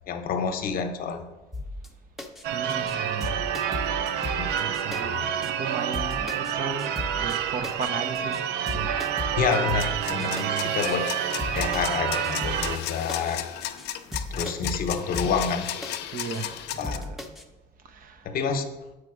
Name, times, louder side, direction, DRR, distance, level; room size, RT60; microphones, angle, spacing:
voice 1, 0.1-1.3 4.4-4.5 5.0-5.1 9.4-11.1 11.5-13.5 14.3-15.7 16.8-17.1 18.2-18.6, left 6 dB, 60° left, 7 dB, 0.8 m, -28 dB
sound 1, 1.5-1.9 2.2-2.4 2.7-2.9 3.2-5.0 5.4-5.5 5.9-6.5 6.8-7.4 7.6-7.9 8.1-8.4 8.7-10.5 10.9-11.0 11.4-12.0 12.2-12.8 13.1-13.3 13.6-13.9 14.1-15.9 16.3-16.4 16.8-17.4, left 2 dB, ahead, 0.7 m, -35 dB
Church bell / Car / Alarm, 2.4-12.8, right 9 dB, 85° right, 0.5 m, -28 dB
voice 2, 2.5-3.5 3.9-4.1 4.6-9.0 9.3-9.6 10.1-10.8 15.0-15.5 16.1-17.4 17.8-18.3, right 4 dB, 55° right, 8 dB, 0.8 m, -37 dB
sound 2, 9.8-17.0, left 12 dB, 85° left, 0.5 m, -34 dB
6.9 x 4.9 x 4.9 m, 1.1 s
cardioid pair, 110°, 17 cm